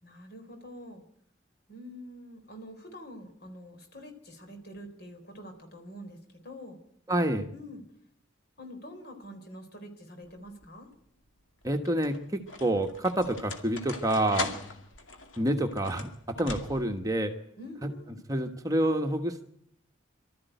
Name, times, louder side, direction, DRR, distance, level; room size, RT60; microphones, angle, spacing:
voice 1, 0.0-1.0 1.7-6.2 6.4-6.8 7.5-7.8 8.6-10.9 14.4-14.5 17.6-18.2, equal, 55° left, 5 dB, 4.1 m, -46 dB
voice 2, 7.1-7.5 11.6-14.5 15.4-16.1 16.4-17.3 17.8-17.9 18.3-19.4, right 1 dB, 20° right, 5 dB, 1.3 m, -28 dB
sound 1, 10.3-10.8 11.6-17.1, left 3 dB, 75° left, 2.3 m, -40 dB
23.5 x 13.5 x 9.2 m, 0.70 s
head